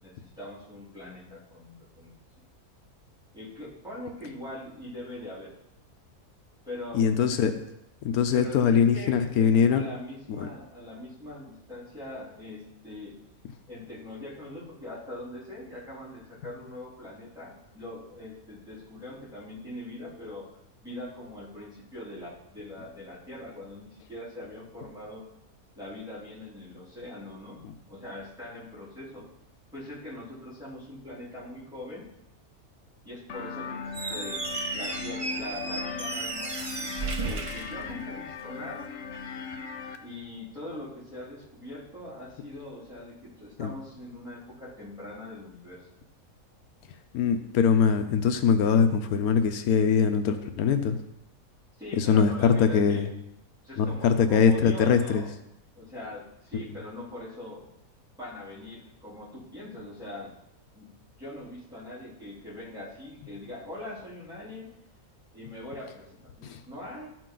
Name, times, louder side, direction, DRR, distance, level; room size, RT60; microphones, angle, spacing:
voice 1, 0.0-2.1 3.3-5.5 6.7-7.1 8.3-13.1 13.7-20.5 20.8-25.2 25.8-27.6 27.9-29.3 29.7-32.1 33.1-34.4 34.7-38.9 40.0-45.9 51.8-53.1 53.6-55.3 55.8-57.6 58.2-60.3 60.7-60.9 61.2-64.7 65.3-67.2, left 1 dB, 5° right, -10 dB, 3.4 m, -42 dB
voice 2, 6.9-7.6 8.0-9.8 10.3-10.5 43.6-43.7 47.1-51.0 51.9-53.1 53.8-55.2 56.5-56.8 66.4-66.6, left 6 dB, 85° left, 8 dB, 1.1 m, -22 dB
sound 1, 33.3-40.0, left 5 dB, 60° left, 0.8 m, -38 dB
Squeak, 33.9-38.5, right 3 dB, 55° right, 0.3 m, -34 dB
12.5 x 5.0 x 3.8 m, 0.81 s
omnidirectional pair, 1.5 m